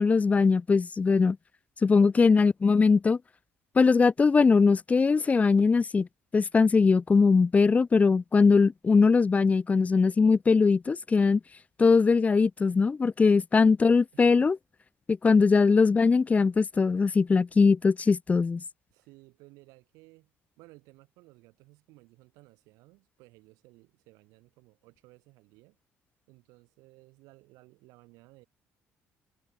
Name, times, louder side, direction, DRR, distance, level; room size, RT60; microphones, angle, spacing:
voice 1, 0.0-1.4 1.8-3.2 3.8-6.1 6.3-11.4 11.8-14.6 15.1-18.6, left 4 dB, 25° left, 0.4 m, -21 dB
voice 2, 1.8-2.3 14.1-14.5 18.9-20.3 20.6-25.8 26.3-28.5, right 22 dB, 90° right, 5.9 m, -57 dB
supercardioid pair, 85°, 6 cm